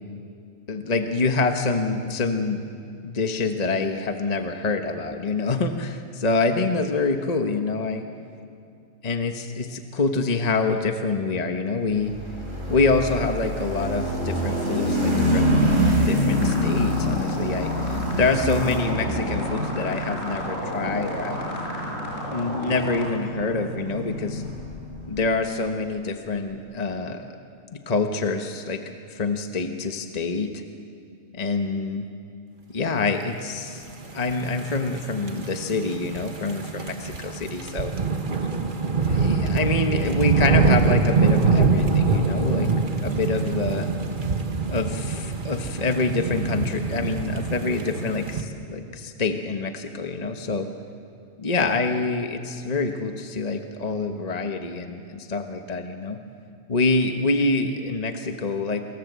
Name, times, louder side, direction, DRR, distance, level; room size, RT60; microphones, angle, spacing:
voice 1, 0.7-2.7 3.0-8.0 9.0-12.1 12.7-21.5 22.3-24.4 25.1-27.3 27.7-28.8 29.1-30.6 31.3-32.1 32.7-33.8 34.1-37.9 39.0-42.7 43.0-43.9 44.7-50.7 51.4-56.2 56.7-58.9, left 3 dB, 30° left, 6 dB, 1.3 m, -26 dB
sound 1, 12.0-25.1, equal, 70° right, 6.1 m, -26 dB
sound 2, 16.2-23.0, equal, 70° left, 6.7 m, -34 dB
sound 3, 34.1-48.4, right 4 dB, 40° right, 1.6 m, -24 dB
29.5 x 22.0 x 8.2 m, 2.5 s
omnidirectional pair, 1.4 m